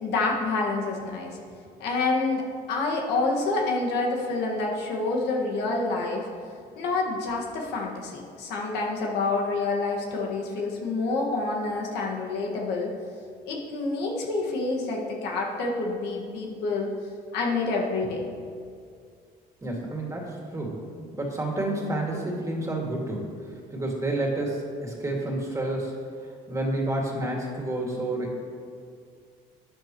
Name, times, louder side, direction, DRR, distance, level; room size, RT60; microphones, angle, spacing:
voice 1, 0.0-1.4 1.8-6.3 6.8-12.9 13.5-16.9 17.3-18.3, left 3 dB, 85° left, -1 dB, 1.7 m, -28 dB
voice 2, 19.6-23.3 23.7-25.9 26.5-28.4, right 1 dB, 20° right, -1 dB, 2.2 m, -29 dB
12.0 x 9.6 x 3.0 m, 2.2 s
cardioid pair, 110°, 17 cm